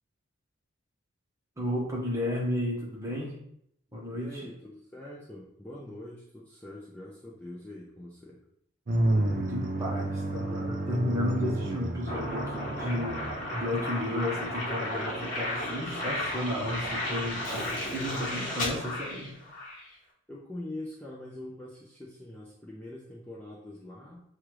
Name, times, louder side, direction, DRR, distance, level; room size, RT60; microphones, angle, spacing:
voice 1, 1.6-3.4 3.9-4.4 9.3-19.4, left 1 dB, 15° right, -3 dB, 1.0 m, -33 dB
voice 2, 4.1-8.4 20.3-24.2, left 1 dB, 5° left, -6 dB, 0.5 m, -43 dB
sound 1, 8.9-18.3, right 1 dB, 40° right, 0.5 m, -33 dB
sound 2, 12.1-19.9, left 1 dB, 40° left, 1.1 m, -34 dB
Shatter, 17.4-18.3, left 4 dB, 65° left, 0.9 m, -52 dB
6.4 x 2.4 x 3.1 m, 0.71 s
head